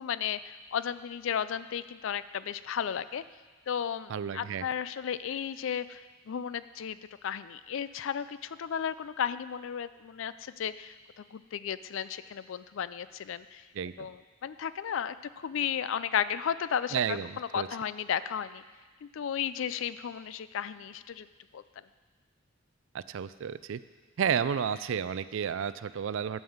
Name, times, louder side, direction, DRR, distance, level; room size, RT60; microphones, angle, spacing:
voice 1, 0.0-3.2 3.7-7.0 7.2-13.6 14.0-18.6 19.0-21.3 21.5-21.6, left 8 dB, 70° left, 14 dB, 0.4 m, -34 dB
voice 2, 4.1-4.7 13.7-14.1 16.9-17.7 22.9-23.8 24.2-26.4, right 7 dB, 70° right, 15 dB, 0.4 m, -31 dB
11.0 x 5.5 x 7.1 m, 1.3 s
head